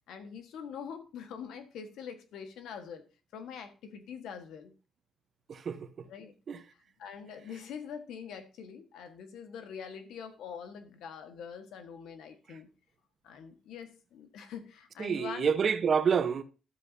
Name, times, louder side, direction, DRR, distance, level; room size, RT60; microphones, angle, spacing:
voice 1, 0.1-3.0 3.3-4.7 6.1-6.3 6.7-12.7 13.2-15.5, left 7 dB, 80° left, 1.4 m, -44 dB
voice 2, 5.5-5.9 6.5-6.6 15.0-16.4, right 6 dB, 50° right, 1.0 m, -28 dB
12.0 x 7.9 x 2.7 m
cardioid pair, 90°, 0 cm